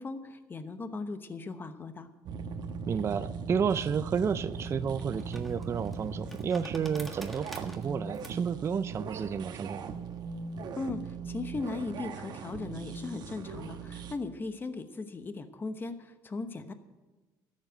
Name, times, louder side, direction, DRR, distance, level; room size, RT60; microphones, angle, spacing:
voice 1, 0.0-2.1 10.8-16.7, left 3 dB, 25° left, 9 dB, 1.0 m, -38 dB
sound 1, 2.2-14.1, right 5 dB, 55° right, 1.1 m, -39 dB
voice 2, 2.9-9.9, right 7 dB, 35° right, 12 dB, 0.4 m, -31 dB
sound 2, 4.1-10.8, equal, ahead, 1.6 m, -50 dB
13.0 x 7.4 x 9.0 m, 1.2 s
cardioid pair, 115°, 8 cm